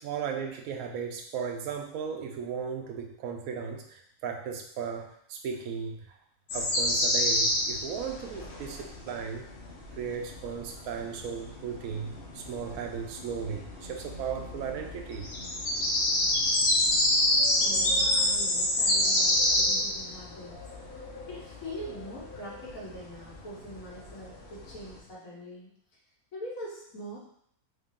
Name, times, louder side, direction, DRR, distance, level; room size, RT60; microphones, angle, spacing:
voice 1, 0.0-6.2 6.5-9.5 10.0-15.3, right 6 dB, 75° right, 3 dB, 1.0 m, -36 dB
sound 1, 6.5-25.0, left 1 dB, 45° left, 0.8 m, -29 dB
voice 2, 17.6-20.6 21.3-25.7 26.3-27.2, equal, 65° left, -5 dB, 1.6 m, -43 dB
3.5 x 2.6 x 3.6 m, 0.67 s
omnidirectional pair, 1.6 m